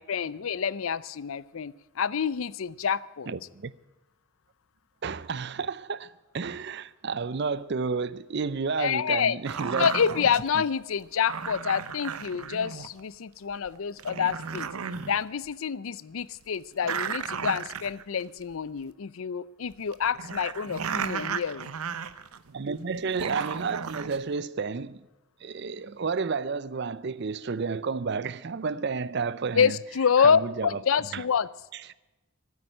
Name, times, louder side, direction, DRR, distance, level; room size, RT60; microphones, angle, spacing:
voice 1, 0.0-3.3 8.8-9.4 9.8-14.7 15.1-21.7 29.5-31.5, left 7 dB, 70° left, 0.5 m, -27 dB
voice 2, 3.3-3.7 5.0-9.9 10.5-10.6 22.5-25.0 25.4-29.8 30.2-30.8 31.1-31.2 31.7-32.0, right 5 dB, 50° right, 0.5 m, -31 dB
sound 1, 9.5-10.5 11.3-13.0 13.7-13.8 14.0-15.2 15.4-15.5 16.8-18.2 18.5-18.6 19.7-22.6 23.0-24.2, right 6 dB, 85° right, 0.7 m, -34 dB
12.0 x 9.5 x 10.0 m
head